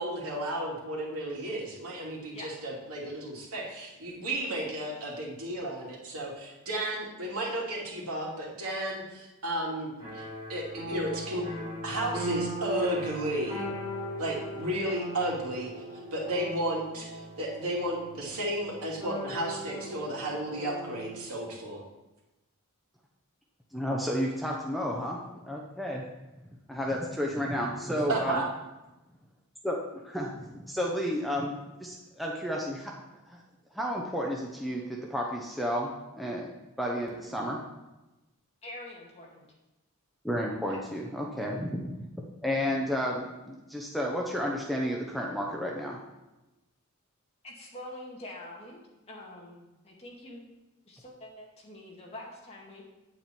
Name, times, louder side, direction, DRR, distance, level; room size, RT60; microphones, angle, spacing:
voice 1, 0.0-11.5 11.8-13.6 14.2-15.7 16.1-21.8 28.1-28.5, right 1 dB, 85° right, -3 dB, 2.7 m, -33 dB
sound 1, 10.0-21.2, right 1 dB, 30° right, 3.2 m, -38 dB
voice 2, 23.7-26.0 26.7-28.4 29.6-29.8 30.0-32.9 33.3-33.4 33.7-34.8 35.1-36.5 36.8-37.6 40.2-42.1 42.4-46.0, equal, ahead, -2 dB, 0.8 m, -32 dB
voice 3, 38.6-39.5 40.7-40.8 41.4-41.7 47.4-48.8 49.1-50.4 50.9-52.8, left 1 dB, 25° left, -3 dB, 2.1 m, -45 dB
8.8 x 8.6 x 4.5 m, 1.0 s
head